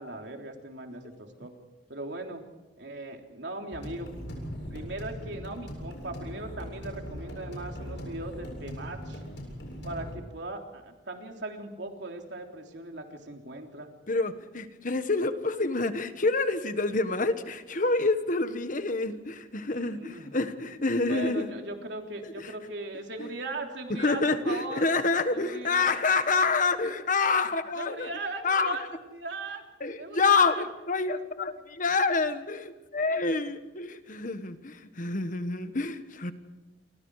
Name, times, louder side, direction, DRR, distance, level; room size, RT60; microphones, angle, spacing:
voice 1, 0.0-1.5 1.9-2.4 2.8-4.1 4.7-9.2 9.8-13.9 19.7-20.4 21.1-24.9 25.3-26.0 27.8-28.8 29.1-29.6 30.0-30.6, right 2 dB, 75° right, 2 dB, 3.5 m, -39 dB
sound 1, 3.7-10.1, equal, 80° left, 7.7 m, -40 dB
voice 2, 14.1-21.5 22.2-22.5 23.2-23.3 23.9-28.1 28.4-28.8 29.8-36.3, left 3 dB, 50° left, 10 dB, 1.4 m, -27 dB
29.0 x 24.5 x 4.9 m, 1.1 s
head